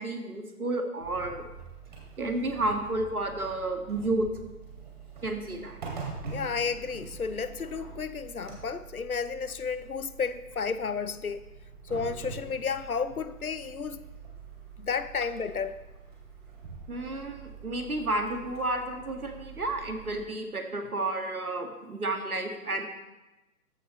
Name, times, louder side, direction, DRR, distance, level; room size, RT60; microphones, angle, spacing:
voice 1, 0.0-1.5 2.2-4.3 5.2-5.8 16.9-22.9, right 2 dB, 70° right, 4 dB, 1.9 m, -31 dB
sound 1, 1.0-20.3, right 5 dB, 30° right, 2.7 m, -45 dB
voice 2, 6.3-11.4 11.9-14.0 14.8-15.8, left 5 dB, 70° left, 14 dB, 0.7 m, -32 dB
14.0 x 10.0 x 3.1 m, 1.0 s
figure-of-eight pair, 140°, 45 cm